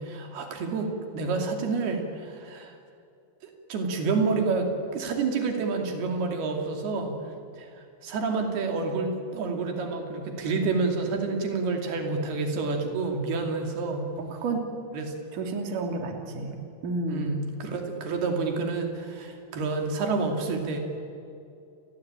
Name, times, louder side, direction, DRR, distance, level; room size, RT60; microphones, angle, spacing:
voice 1, 0.0-2.8 3.4-7.1 7.6-7.7 8.0-14.1 14.9-15.1 17.1-20.8, right 4 dB, 85° right, 3 dB, 4.6 m, -29 dB
voice 2, 14.2-14.7 15.3-17.3, right 3 dB, 60° right, 3 dB, 4.1 m, -31 dB
30.0 x 21.5 x 8.9 m, 2.6 s
omnidirectional pair, 4.4 m